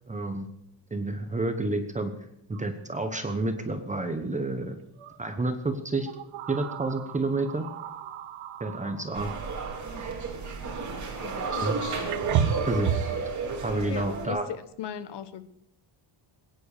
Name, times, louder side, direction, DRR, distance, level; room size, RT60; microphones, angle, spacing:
voice 1, 0.1-0.5 0.9-2.1 2.5-4.8 5.2-6.1 6.5-7.7 8.6-9.3 11.4-11.8 12.7-12.9 13.6-14.4, right 2 dB, 15° right, 7 dB, 1.1 m, -29 dB
sound 1, 2.5-2.6 3.0-3.2 5.0-5.2 6.0-10.3 11.5-11.6 12.1-13.2, right 8 dB, 80° right, 1.3 m, -33 dB
sound 2, 9.1-14.3, right 4 dB, 35° right, 3.1 m, -32 dB
voice 2, 11.2-11.7 13.9-15.5, left 9 dB, 55° left, 13 dB, 1.3 m, -37 dB
21.0 x 10.0 x 6.7 m, 0.80 s
cardioid pair, 170°, 49 cm